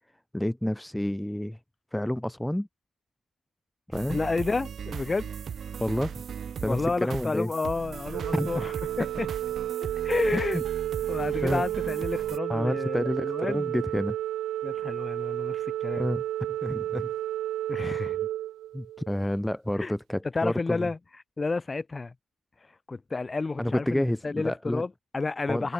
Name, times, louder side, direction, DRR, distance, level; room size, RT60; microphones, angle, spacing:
voice 1, 0.3-1.6 1.9-2.7 3.9-4.2 5.8-6.2 6.6-7.5 8.3-8.7 9.0-9.1 10.3-10.6 11.4-11.6 12.5-14.2 16.0-17.1 17.8-18.0 18.7-20.9 23.6-24.8 25.5-25.7, left 1 dB, 5° left, 3.8 m, -29 dB
sound 1, 3.9-12.4, right 7 dB, 55° right, 4.7 m, -38 dB
voice 2, 4.1-5.3 6.7-9.3 10.0-10.6 11.1-13.9 14.6-16.0 17.7-18.2 19.8-19.9 20.3-21.0 21.4-22.1 22.6-25.7, left 3 dB, 25° left, 6.2 m, -31 dB
Organ, 8.1-19.2, right 13 dB, 80° right, 0.9 m, -31 dB
cardioid pair, 90°, 0 cm